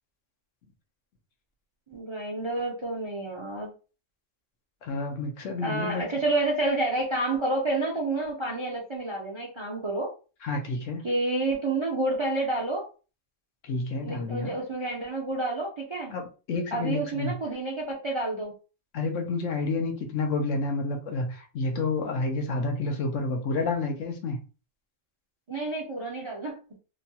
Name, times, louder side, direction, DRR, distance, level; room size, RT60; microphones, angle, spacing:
voice 1, 1.9-3.7 5.6-10.1 11.0-12.9 14.0-16.1 16.7-18.5 25.5-26.8, right 2 dB, 35° right, -2 dB, 0.5 m, -29 dB
voice 2, 4.8-6.2 10.4-11.0 13.6-14.6 16.1-17.3 18.9-24.4, left 3 dB, 75° left, 4 dB, 1.1 m, -29 dB
3.0 x 2.2 x 2.7 m, 0.34 s
omnidirectional pair, 1.3 m